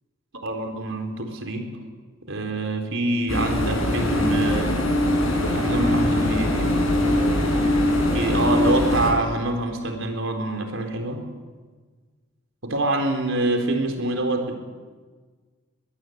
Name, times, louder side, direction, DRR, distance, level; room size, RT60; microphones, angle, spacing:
voice 1, 0.4-1.7 2.2-4.8 5.5-6.8 8.1-11.2 12.6-14.6, right 2 dB, 75° right, 4 dB, 3.8 m, -26 dB
sound 1, 3.3-9.1, left 1 dB, 90° left, 7.8 m, -22 dB
22.0 x 21.5 x 7.9 m, 1.4 s
head